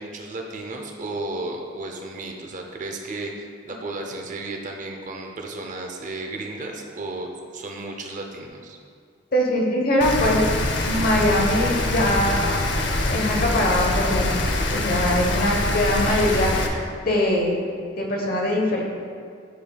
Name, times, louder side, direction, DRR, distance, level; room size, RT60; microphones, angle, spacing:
voice 1, 0.0-8.8, right 2 dB, 40° right, 2 dB, 0.6 m, -34 dB
voice 2, 9.3-10.4 10.8-12.6 13.1-14.3 14.7-17.6 18.0-18.8, left 1 dB, 50° left, -1 dB, 1.0 m, -22 dB
Rain, 10.0-16.7, left 2 dB, 65° left, 0.6 m, -24 dB
10.0 x 5.1 x 2.3 m, 2.2 s
head